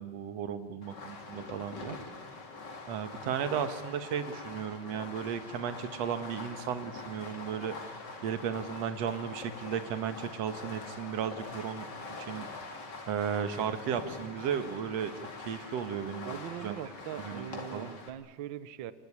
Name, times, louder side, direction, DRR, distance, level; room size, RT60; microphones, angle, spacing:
voice 1, 0.0-2.0 2.9-7.7 8.2-11.9 12.2-12.5 13.1-15.1 15.5-16.4 16.6-16.7 17.2-17.9, right 8 dB, 60° right, 9 dB, 2.5 m, -35 dB
Fireworks, 0.8-18.1, left 3 dB, 35° left, 2.8 m, -44 dB
voice 2, 16.3-18.9, right 10 dB, 90° right, 14 dB, 1.0 m, -41 dB
27.5 x 20.0 x 9.9 m, 1.5 s
omnidirectional pair, 3.5 m